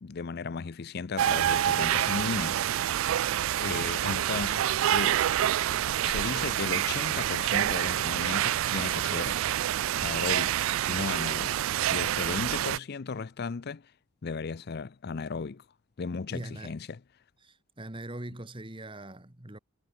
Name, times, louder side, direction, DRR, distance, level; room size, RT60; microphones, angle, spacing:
voice 1, 0.0-3.1 3.5-5.3 5.7-9.4 10.0-10.6 10.9-11.6 11.9-13.9 14.2-15.6 16.0-17.0, left 4 dB, 50° left, 0.5 m, -35 dB
sound 1, 1.2-12.8, right 11 dB, 70° right, 0.3 m, -27 dB
sound 2, 1.3-10.6, left 2 dB, 15° left, 3.6 m, -63 dB
voice 2, 16.3-16.8 17.4-19.6, right 1 dB, 25° right, 1.7 m, -41 dB
head